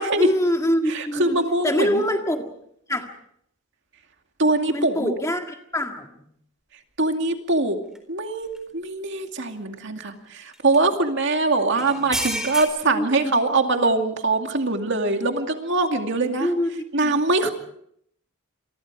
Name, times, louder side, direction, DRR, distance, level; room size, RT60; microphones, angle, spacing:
voice 1, 0.0-1.4 1.6-2.5 2.9-3.1 4.7-6.1 11.8-11.9 12.9-13.4 16.4-16.7 17.0-17.1, equal, 15° left, 4 dB, 1.9 m, -24 dB
voice 2, 0.9-2.0 4.4-5.1 7.0-7.8 8.1-16.5 16.9-17.5, right 2 dB, 55° right, 4 dB, 2.4 m, -23 dB
sound 1, 7.9-8.0 8.6-8.7 10.5-10.8 11.8-12.6, equal, ahead, 4.0 m, -28 dB
28.0 x 24.0 x 4.8 m, 0.70 s
head